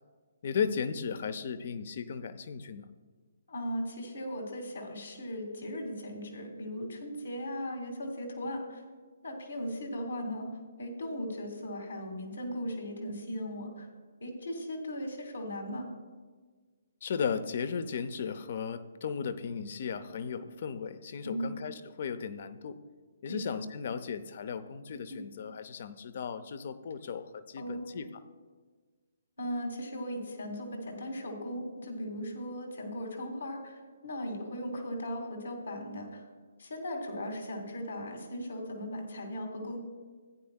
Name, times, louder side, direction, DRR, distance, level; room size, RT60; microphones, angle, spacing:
voice 1, 0.4-2.9 17.0-22.8 23.2-28.1, left 6 dB, 50° left, 12 dB, 0.7 m, -36 dB
voice 2, 3.5-8.8 9.2-10.5 10.8-13.9 14.2-15.9 21.2-21.5 23.3-23.4 25.1-25.2 27.6-28.0 29.4-36.2 36.6-39.8, equal, 75° left, 1 dB, 2.2 m, -37 dB
16.5 x 9.3 x 2.4 m, 1.5 s
figure-of-eight pair, 135°, 0 cm